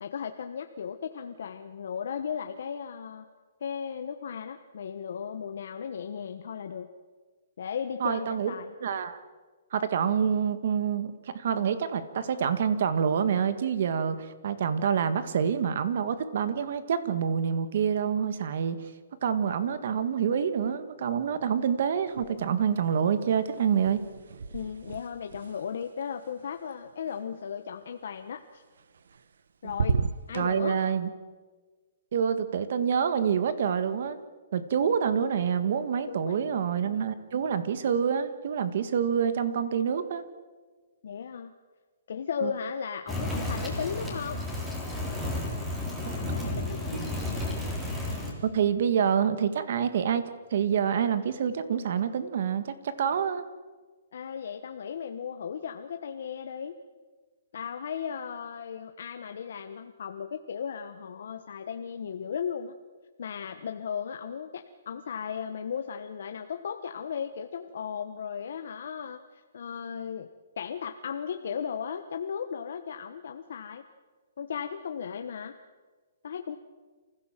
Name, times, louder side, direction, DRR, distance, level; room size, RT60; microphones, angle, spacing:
voice 1, 0.0-3.3 3.6-6.9 7.6-8.7 24.5-28.6 29.6-30.0 30.3-30.8 36.1-36.6 41.0-41.5 42.1-44.5 46.1-47.1 54.1-56.8 57.5-62.7 63.2-70.3 70.6-73.8 74.4-75.5 76.2-76.6, left 7 dB, 65° left, 6 dB, 1.2 m, -36 dB
voice 2, 8.0-8.5 8.8-9.2 9.7-18.9 19.2-24.0 30.4-31.1 32.1-34.2 34.5-40.2 42.4-42.5 46.9-47.0 48.4-53.4, right 7 dB, 55° right, 11 dB, 1.8 m, -27 dB
sound 1, 22.1-22.8 23.0-27.2 28.8-29.4 29.7-30.5, right 5 dB, 75° right, 0.9 m, -35 dB
sound 2, 43.1-48.3, left 1 dB, 5° right, 3.7 m, -32 dB
28.0 x 16.0 x 7.5 m, 1.4 s
hypercardioid pair, 165°, 0 cm